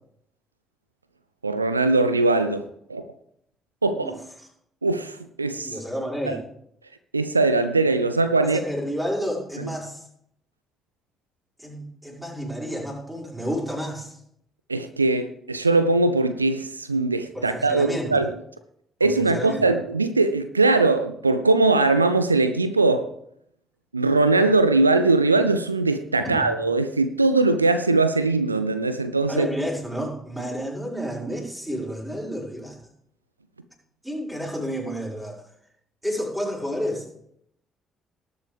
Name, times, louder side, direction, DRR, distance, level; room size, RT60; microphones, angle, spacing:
voice 1, 1.4-2.6 2.9-3.0 3.8-4.1 4.8-5.8 6.3-6.4 7.1-8.6 14.7-18.3 19.0-23.1 23.9-29.5, right 3 dB, 90° right, 0.4 m, -21 dB
voice 2, 3.9-4.5 5.6-6.4 8.4-10.1 11.6-14.2 17.3-18.3 19.0-19.7 26.2-26.5 29.3-32.8 34.0-35.5 36.0-37.1, equal, 5° right, 5.4 m, -31 dB
19.0 x 8.2 x 3.5 m
figure-of-eight pair, 45°, 0 cm